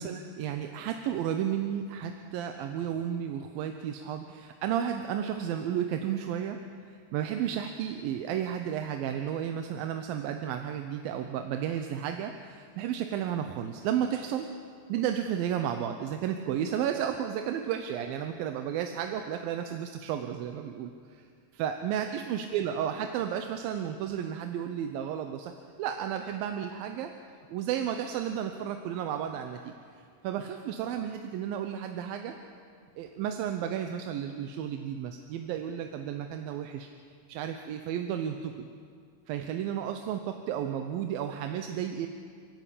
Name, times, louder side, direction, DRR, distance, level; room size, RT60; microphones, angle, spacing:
voice 1, 0.0-14.5 14.9-21.3 21.5-27.1 27.5-29.7 30.2-32.3 33.0-36.9 37.3-38.7 39.3-42.1, right 9 dB, 80° right, 6 dB, 2.6 m, -33 dB
29.5 x 12.0 x 8.4 m, 2.2 s
omnidirectional pair, 4.3 m